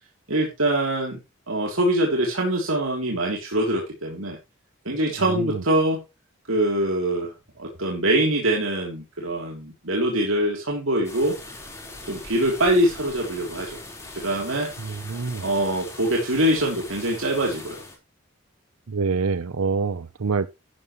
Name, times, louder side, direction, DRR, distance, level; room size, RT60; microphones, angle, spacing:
voice 1, 0.3-1.2 1.5-4.4 4.8-6.0 6.5-11.4 12.1-13.8 14.1-14.7 15.4-17.8, right 1 dB, 70° right, 3.2 m, -24 dB
sound 1, 11.0-18.0, left 2 dB, 15° left, 4.2 m, -41 dB
voice 2, 15.1-15.4 18.9-20.5, right 4 dB, 85° right, 0.7 m, -25 dB
12.5 x 11.0 x 3.1 m
head